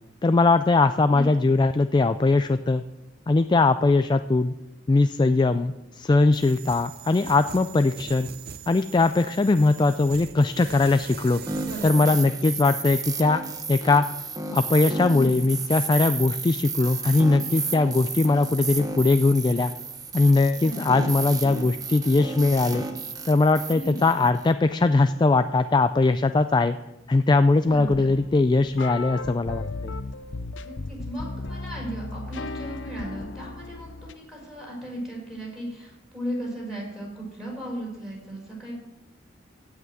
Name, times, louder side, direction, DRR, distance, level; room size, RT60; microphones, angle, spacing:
voice 1, 0.2-2.8 3.3-4.5 4.9-8.3 8.7-11.4 11.8-13.4 13.7-14.0 14.5-19.7 20.1-22.9 23.3-26.8 27.1-29.9, left 3 dB, 25° left, 10 dB, 0.3 m, -20 dB
sound 1, 6.3-11.9, right 8 dB, 55° right, 0.6 m, -42 dB
sound 2, 11.5-24.5, right 4 dB, 20° right, 1.0 m, -33 dB
voice 2, 11.7-12.1 15.1-15.4 20.6-20.7 23.7-24.0 27.7-28.1 30.6-38.7, right 1 dB, ahead, -4 dB, 5.7 m, -36 dB
sound 3, 27.7-34.1, left 3 dB, 75° left, 0.7 m, -36 dB
15.5 x 5.9 x 7.8 m, 0.97 s
head